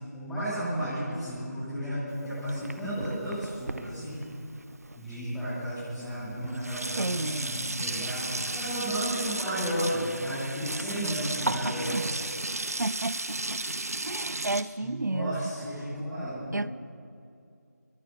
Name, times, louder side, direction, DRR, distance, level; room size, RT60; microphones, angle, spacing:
voice 1, 0.1-4.2 4.9-11.9 14.8-16.5, equal, ahead, -15 dB, 0.5 m, -33 dB
Sink (filling or washing), 2.1-5.2 6.0-6.1 6.3-14.6, right 2 dB, 55° right, 1.5 m, -34 dB
voice 2, 7.0-7.5 11.9-12.1 12.8-13.6 14.0-15.4 16.5-16.7, right 2 dB, 75° right, 18 dB, 0.9 m, -31 dB
23.5 x 22.0 x 6.5 m, 2.5 s
figure-of-eight pair, 175°, 10 cm